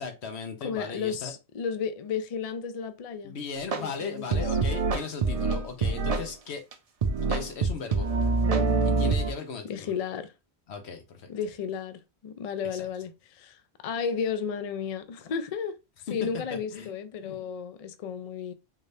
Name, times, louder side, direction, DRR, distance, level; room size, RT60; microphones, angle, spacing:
voice 1, 0.0-1.3 3.2-6.6 7.3-8.1 8.8-9.9 10.7-11.3 12.7-12.9 16.3-16.4 16.7-16.9 17.2-17.4, left 5 dB, 80° left, 1.1 m, -37 dB
voice 2, 0.6-3.4 3.8-4.4 9.6-10.3 11.3-15.8 16.1-18.5, left 6 dB, 55° left, 0.4 m, -33 dB
sound 1, 3.7-3.8 4.3-6.3 6.7-6.8 7.0-9.3, right 3 dB, 45° right, 0.5 m, -25 dB
3.7 x 2.6 x 3.2 m
omnidirectional pair, 1.1 m